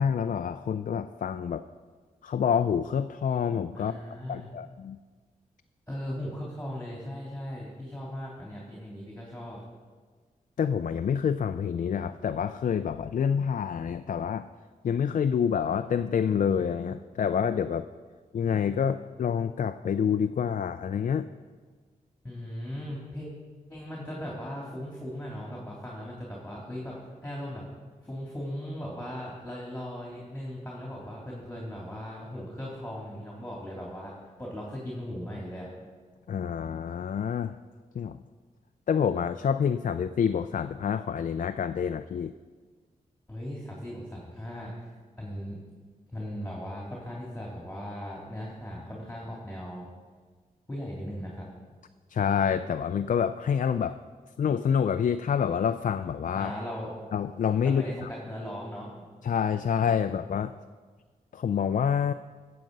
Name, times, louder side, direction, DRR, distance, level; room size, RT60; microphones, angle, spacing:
voice 1, 0.0-1.6 2.2-3.9 4.3-5.0 10.6-14.5 14.8-17.9 18.3-21.3 36.3-37.6 37.9-38.2 38.9-42.3 52.1-54.0 54.4-56.5 57.1-58.1 59.2-60.5 61.3-62.1, left 7 dB, 60° left, 10 dB, 0.4 m, -27 dB
voice 2, 3.7-4.5 5.9-9.6 22.2-23.3 23.7-27.0 27.2-27.6 28.0-34.1 34.4-35.7 43.3-44.7 45.2-45.6 46.1-49.9 50.7-51.5 56.3-56.9 57.6-58.9, equal, 10° left, -4 dB, 3.1 m, -38 dB
14.0 x 7.6 x 5.4 m, 1.5 s
cardioid pair, 55°, 15 cm